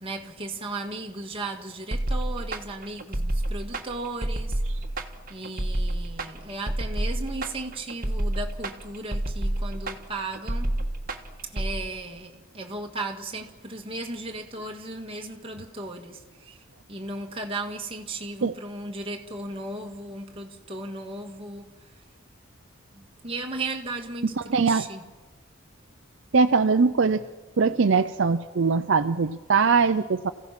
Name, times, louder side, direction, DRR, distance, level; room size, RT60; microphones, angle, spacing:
voice 1, 0.0-4.6 5.3-10.8 11.4-16.6 16.9-21.9 22.9-25.1, right 2 dB, 25° right, 1.7 m, -36 dB
sound 1, 1.9-11.7, right 1 dB, 45° right, 1.4 m, -29 dB
voice 2, 24.5-24.9 26.3-27.2 27.6-30.3, right 4 dB, 60° right, 0.5 m, -21 dB
28.5 x 16.0 x 5.9 m
head